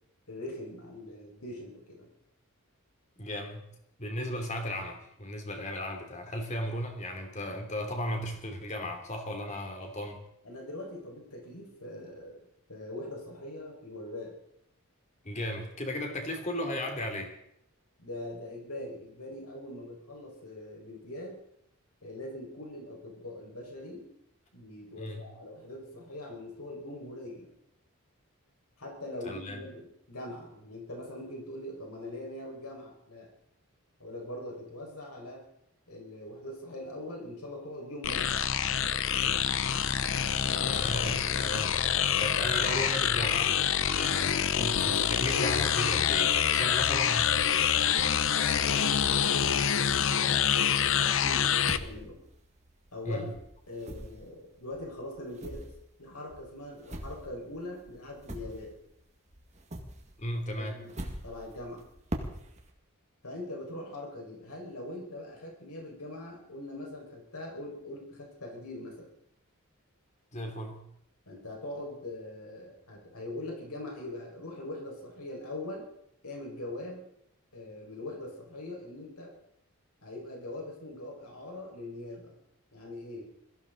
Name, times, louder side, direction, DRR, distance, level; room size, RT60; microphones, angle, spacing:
voice 1, 0.3-2.1 10.4-12.4 12.7-14.3 18.0-21.4 22.0-24.1 24.5-27.5 28.8-33.3 34.0-35.4 35.9-38.4 48.6-52.2 52.9-53.3 53.7-55.7 56.0-58.7 60.6-61.9 63.2-69.1 71.3-75.9 76.2-77.0 77.5-79.3 80.0-82.3 82.7-83.3, left 1 dB, 90° left, -1 dB, 5.3 m, -42 dB
voice 2, 3.2-3.7 4.0-10.2 15.2-17.3 25.0-25.2 29.2-29.6 40.6-41.8 42.2-47.4 53.0-53.3 60.2-60.8 70.3-70.8, left 1 dB, 30° left, 3 dB, 2.8 m, -35 dB
sound 1, 38.0-51.8, left 8 dB, 60° left, 0.7 m, -26 dB
sound 2, 48.4-50.5 51.0-53.1 53.3-59.0 59.3-62.7, right 1 dB, 30° right, 1.9 m, -43 dB
21.5 x 15.0 x 4.0 m, 0.75 s
head